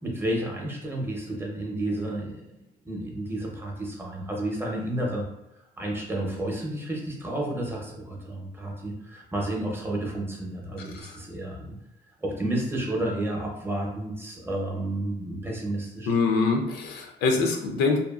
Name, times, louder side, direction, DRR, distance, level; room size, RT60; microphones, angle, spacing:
voice 1, 0.0-2.4 2.8-5.2 5.8-11.7 12.2-16.2, right 1 dB, 15° right, -1 dB, 0.6 m, -31 dB
voice 2, 16.1-18.0, left 4 dB, 80° left, 3 dB, 0.5 m, -24 dB
2.8 x 2.3 x 2.3 m, 0.87 s
cardioid pair, 110°, 17 cm